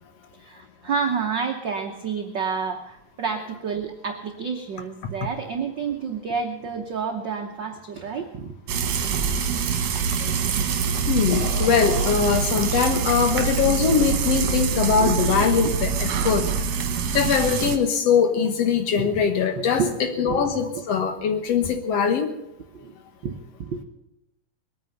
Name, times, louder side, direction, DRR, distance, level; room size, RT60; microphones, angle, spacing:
voice 1, 0.4-8.6 9.5-9.7 15.0-15.2 15.6-15.7 19.0-19.2 19.5-20.4 22.7-22.9 23.2-23.8, right 5 dB, 90° right, 4 dB, 1.0 m, -29 dB
Frying (food), 8.7-17.8, right 6 dB, 60° right, 2.2 m, -24 dB
voice 2, 11.1-16.5 17.1-19.8 20.2-22.3, left 6 dB, 60° left, 7 dB, 1.9 m, -22 dB
20.5 x 9.3 x 6.7 m, 0.85 s
omnidirectional pair, 3.7 m